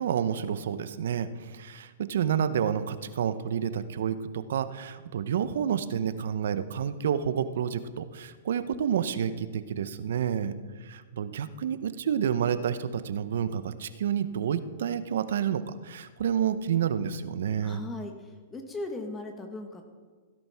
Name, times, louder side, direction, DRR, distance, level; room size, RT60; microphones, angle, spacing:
voice 1, 0.0-10.5 10.8-17.8, right 8 dB, 70° right, 13 dB, 0.7 m, -29 dB
voice 2, 17.6-19.8, left 2 dB, 15° left, 4 dB, 1.3 m, -38 dB
16.0 x 10.0 x 3.5 m, 1.5 s
hypercardioid pair, 120°, 0 cm